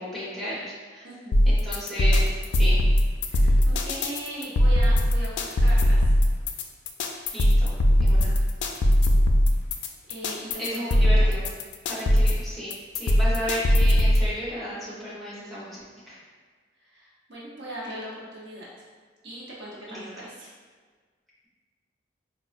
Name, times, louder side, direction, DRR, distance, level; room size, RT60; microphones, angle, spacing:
voice 1, 0.0-1.1 1.4-2.8 7.3-8.4 10.6-11.5 11.9-16.2 19.9-20.3, equal, ahead, -10 dB, 0.8 m, -34 dB
voice 2, 1.0-1.4 3.2-6.0 10.1-10.8 11.2-11.3 16.8-18.7 19.2-20.5, right 1 dB, 70° right, -6 dB, 0.8 m, -39 dB
sound 1, 1.3-14.3, equal, 70° left, 0.3 m, -20 dB
4.5 x 2.3 x 2.4 m, 1.5 s
head